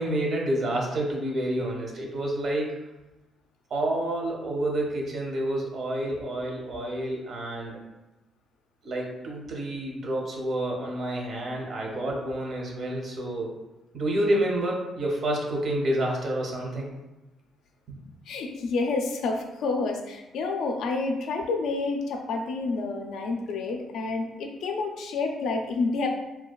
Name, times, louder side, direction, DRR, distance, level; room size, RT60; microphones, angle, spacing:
voice 1, 0.0-2.8 3.7-7.8 8.8-13.5 13.9-16.9 17.9-18.0, right 1 dB, 60° right, 0 dB, 0.6 m, -29 dB
voice 2, 18.3-26.1, left 3 dB, 80° left, 3 dB, 0.3 m, -29 dB
2.6 x 2.2 x 2.2 m, 1.0 s
cardioid pair, 90°, 0 cm